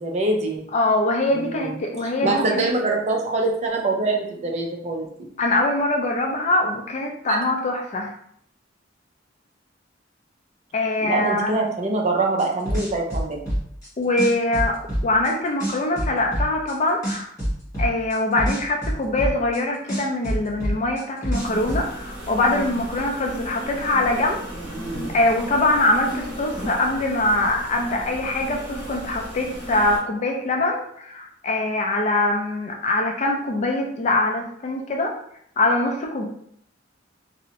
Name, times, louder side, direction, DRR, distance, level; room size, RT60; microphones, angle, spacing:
voice 1, 0.0-0.6 1.3-1.8 2.2-5.1 7.3-7.5 11.0-13.4, right 2 dB, 35° right, 1 dB, 0.4 m, -24 dB
voice 2, 0.7-2.7 5.4-8.1 10.7-11.6 14.0-17.3 17.8-24.4 25.1-35.1 35.6-36.2, left 2 dB, 40° left, 1 dB, 0.4 m, -23 dB
sound 1, 12.4-13.9 14.2-15.3 15.6-16.7 17.0-19.6 19.9-21.8, equal, 15° left, 1.2 m, -25 dB
sound 2, 21.3-30.0, right 1 dB, ahead, 1.2 m, -34 dB
2.6 x 2.0 x 2.8 m, 0.69 s
head